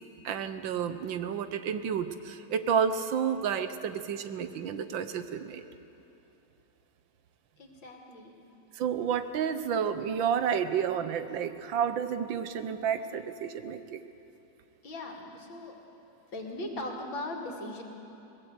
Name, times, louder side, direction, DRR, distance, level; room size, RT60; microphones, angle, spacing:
voice 1, 0.2-5.6 8.7-14.0, right 7 dB, 75° right, 10 dB, 1.7 m, -30 dB
voice 2, 7.6-8.4 14.8-15.8 16.3-17.8, left 1 dB, 75° left, 1 dB, 3.2 m, -39 dB
22.5 x 19.5 x 8.2 m, 3.0 s
omnidirectional pair, 2.1 m